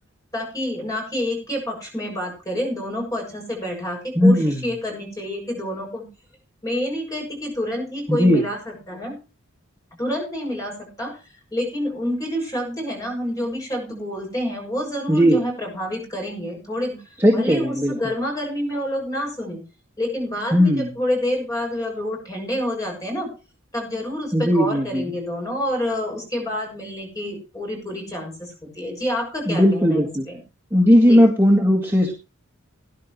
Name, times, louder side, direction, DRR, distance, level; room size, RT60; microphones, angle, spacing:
voice 1, 0.3-6.1 6.6-9.2 10.0-11.2 11.5-19.6 20.0-23.3 23.7-30.4 31.0-31.2, left 1 dB, 15° left, 0 dB, 7.2 m, -28 dB
voice 2, 4.1-4.6 8.1-8.4 15.1-15.4 17.2-17.9 20.5-20.9 24.3-25.1 29.5-30.3 30.7-32.1, equal, 10° right, -1 dB, 1.8 m, -17 dB
19.0 x 11.0 x 3.2 m, 0.32 s
head